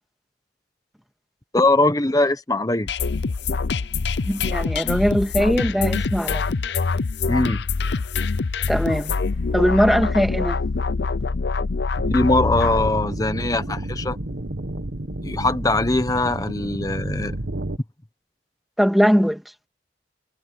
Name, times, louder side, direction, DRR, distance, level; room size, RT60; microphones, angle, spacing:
voice 1, 1.5-2.9 7.3-7.6 12.1-14.2 15.2-17.4, left 2 dB, 20° left, 1.1 m, -21 dB
sound 1, 2.9-12.9, left 4 dB, 75° left, 0.6 m, -24 dB
voice 2, 4.3-6.4 8.7-9.1 9.5-10.6 18.8-19.4, equal, ahead, 2.6 m, -20 dB
sound 2, 12.0-17.8, right 1 dB, 75° right, 1.6 m, -31 dB
head